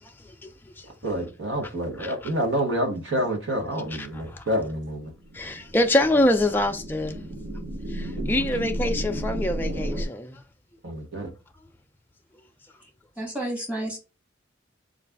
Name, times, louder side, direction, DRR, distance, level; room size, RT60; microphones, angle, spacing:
voice 1, 1.0-5.1 8.1-8.4 10.8-11.3, equal, 70° right, 1.1 m, -28 dB
voice 2, 4.0-4.4 5.3-7.2 7.9-10.4, left 1 dB, 10° left, 0.3 m, -25 dB
sound 1, 5.2-10.1, right 1 dB, 45° right, 0.6 m, -32 dB
voice 3, 13.2-14.0, right 1 dB, 5° right, 1.1 m, -30 dB
3.9 x 2.5 x 3.4 m
head